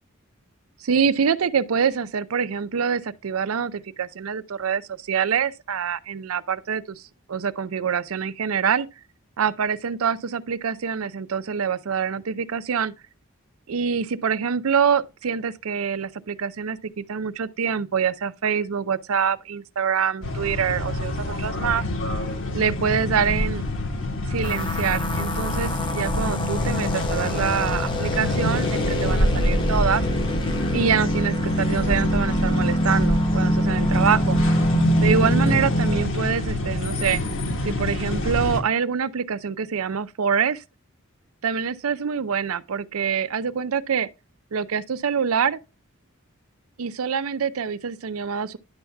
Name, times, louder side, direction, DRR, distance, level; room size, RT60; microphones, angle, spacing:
voice 1, 0.8-7.0 7.3-8.9 9.4-12.9 13.7-21.8 22.5-23.7 24.2-30.0 30.7-34.4 35.0-37.2 37.6-40.6 41.4-44.1 44.5-45.6 46.8-48.6, right 6 dB, 90° right, 0.5 m, -25 dB
sound 1, 20.2-38.6, left 1 dB, 65° left, 1.4 m, -26 dB
sound 2, 24.4-36.1, equal, 25° left, 0.6 m, -25 dB
10.5 x 7.1 x 2.3 m
head